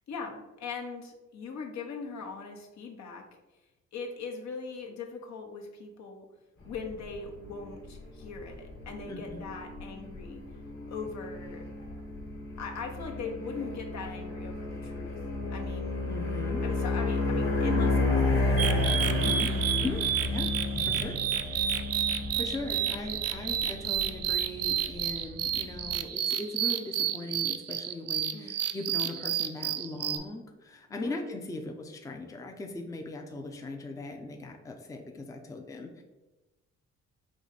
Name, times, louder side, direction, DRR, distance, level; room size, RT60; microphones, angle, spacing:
voice 1, 0.1-3.3 3.9-6.3 6.6-10.4 10.9-11.7 12.6-15.1 15.5-16.0 16.6-18.6 19.0-19.5 28.3-28.6 30.9-31.3, left 5 dB, 65° left, 2 dB, 0.9 m, -40 dB
sound 1, 6.7-26.0, left 2 dB, 45° left, 1.3 m, -32 dB
voice 2, 9.1-9.4 16.1-16.6 19.0-19.5 19.8-20.5 20.8-21.2 21.4-21.9 22.4-36.0, left 2 dB, 10° left, 4 dB, 0.5 m, -39 dB
sound 2, 18.6-30.2, right 10 dB, 55° right, 0.4 m, -31 dB
4.7 x 2.7 x 4.0 m, 1.1 s
cardioid pair, 90°, 30 cm